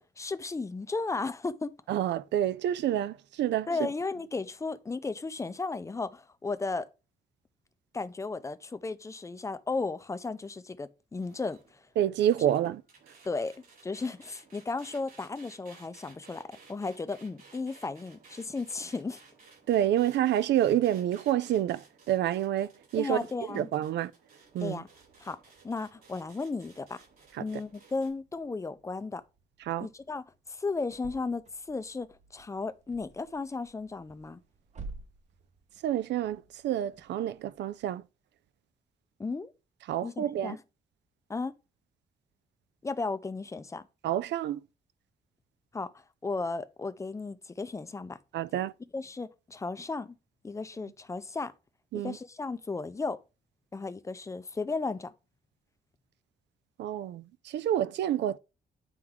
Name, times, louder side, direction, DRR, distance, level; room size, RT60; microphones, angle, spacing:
voice 1, 0.0-1.7 3.7-6.9 7.9-11.8 12.4-12.5 13.2-13.5 13.8-19.2 23.0-23.7 24.6-24.9 25.2-25.4 25.6-27.0 27.4-29.2 29.8-34.4 39.2-39.5 40.0-40.6 41.3-41.5 42.8-43.8 45.7-48.2 48.9-50.2 50.4-51.5 52.0-53.2 53.7-55.1, left 3 dB, 15° left, 0.5 m, -35 dB
voice 2, 1.9-3.9 12.0-12.8 19.7-23.2 23.5-24.1 24.5-24.8 29.7-29.9 35.8-38.0 39.9-40.6 44.0-44.6 48.3-48.7 51.9-52.2 56.8-58.4, right 11 dB, 80° right, 0.4 m, -28 dB
sound 1, 11.2-28.1, right 4 dB, 55° right, 5.0 m, -57 dB
sound 2, 24.4-38.0, right 3 dB, 40° right, 1.0 m, -53 dB
9.5 x 4.5 x 3.6 m
cardioid pair, 150°, 18 cm